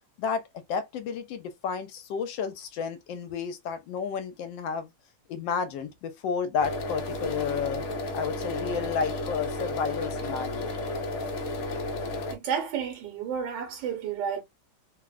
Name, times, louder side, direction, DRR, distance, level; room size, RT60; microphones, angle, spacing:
voice 1, 0.2-4.9 5.3-7.8 8.1-10.7, left 6 dB, 85° left, 1.3 m, -31 dB
sound 1, 6.6-12.4, left 2 dB, 65° left, 0.9 m, -32 dB
voice 2, 12.3-14.4, right 7 dB, 85° right, 1.5 m, -31 dB
3.3 x 2.0 x 2.4 m
omnidirectional pair, 2.0 m